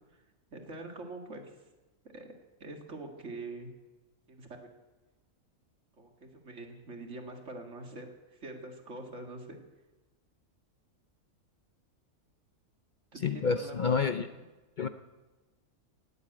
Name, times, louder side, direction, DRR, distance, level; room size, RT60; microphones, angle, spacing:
voice 1, 0.5-1.6 2.1-2.3 2.6-3.7 4.3-4.7 6.0-9.6 13.1-14.4, right 2 dB, 50° right, 3 dB, 2.3 m, -44 dB
voice 2, 13.2-14.3 14.8-14.9, left 5 dB, 80° left, 9 dB, 0.4 m, -28 dB
18.0 x 8.2 x 9.1 m, 1.1 s
omnidirectional pair, 1.6 m